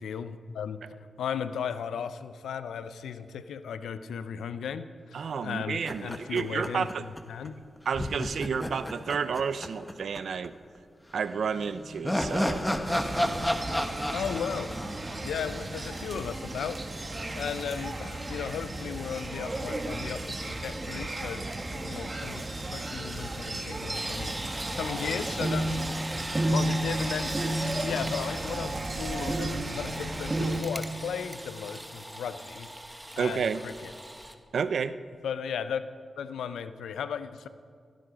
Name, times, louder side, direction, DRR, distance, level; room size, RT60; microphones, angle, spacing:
voice 1, 0.0-7.6 14.1-14.7 15.2-21.5 21.7-25.8 26.5-27.4 27.8-32.7 33.2-33.9 35.2-35.8 36.2-37.5, left 7 dB, 90° left, 12 dB, 0.5 m, -36 dB
voice 2, 5.1-7.0 7.9-10.5 11.1-12.6 33.2-33.6 34.5-35.0, right 6 dB, 75° right, 14 dB, 0.5 m, -30 dB
sound 1, 5.8-7.2 7.5-7.6 7.9-10.2 10.4-10.5 11.5-15.9, left 1 dB, 10° left, 1.3 m, -32 dB
sound 2, 12.8-30.6, right 1 dB, 35° right, 1.6 m, -33 dB
sound 3, 23.9-34.3, right 1 dB, 10° right, 1.5 m, -42 dB
17.0 x 12.5 x 5.2 m, 2.1 s
supercardioid pair, 45°, 0 cm